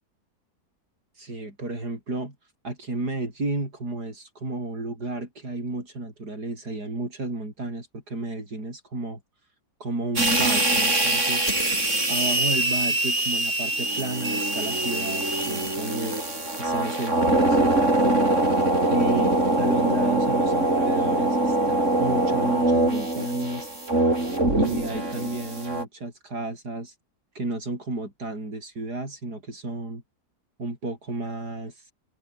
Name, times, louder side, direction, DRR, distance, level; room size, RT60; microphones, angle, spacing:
voice 1, 1.2-2.4 2.6-9.2 9.8-11.5 12.1-16.2 16.6-18.4 18.9-23.7 24.5-26.9 27.4-30.0 30.6-31.7, right 2 dB, 65° right, 7.6 m, -32 dB
sound 1, 10.2-25.8, right 2 dB, 45° right, 6.7 m, -23 dB
omnidirectional pair, 1.8 m